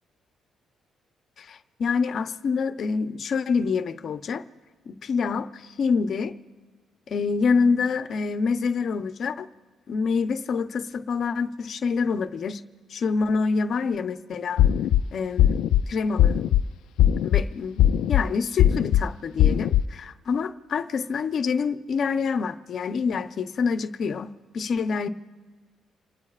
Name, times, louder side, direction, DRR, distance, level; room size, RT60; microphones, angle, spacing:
voice 1, 1.4-4.4 4.9-6.3 7.1-9.5 9.9-12.6 12.9-14.6 15.1-15.5 15.9-16.4 17.2-25.1, left 5 dB, 60° left, 9 dB, 0.7 m, -26 dB
sound 1, 14.6-15.0 15.4-15.8 16.2-16.6 17.0-17.4 17.8-18.2 18.6-19.0 19.4-19.8, left 11 dB, 85° left, 0.4 m, -19 dB
28.0 x 19.0 x 2.5 m, 1.4 s
cardioid pair, 90°, 0 cm